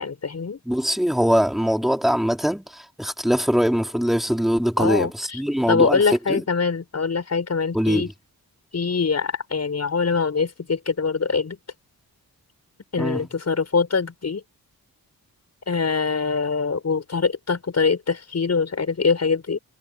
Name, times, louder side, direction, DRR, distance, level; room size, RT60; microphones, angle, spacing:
voice 1, 0.0-0.6 4.8-5.4 5.7-8.1 8.7-11.6 12.9-14.4 15.7-19.6, left 5 dB, 45° left, 6.7 m, -23 dB
voice 2, 0.6-6.0 6.3-6.4 7.7-8.1 13.0-13.2, equal, ahead, 3.4 m, -22 dB
wide cardioid pair, 165°, 36 cm